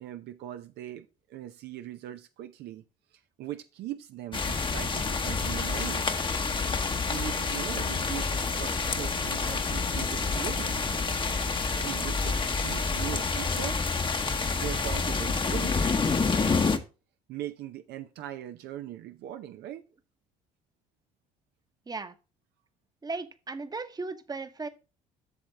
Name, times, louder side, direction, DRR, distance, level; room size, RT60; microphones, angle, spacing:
voice 1, 0.0-2.8 3.1-6.1 6.9-11.0 11.4-13.8 14.5-15.8 17.3-19.9, right 12 dB, 70° right, 0.6 m, -40 dB
sound 1, 4.3-16.8, left 4 dB, 30° left, 1.0 m, -28 dB
voice 2, 23.0-24.7, right 3 dB, 20° right, 1.0 m, -36 dB
8.5 x 6.3 x 3.3 m
supercardioid pair, 70°, 18 cm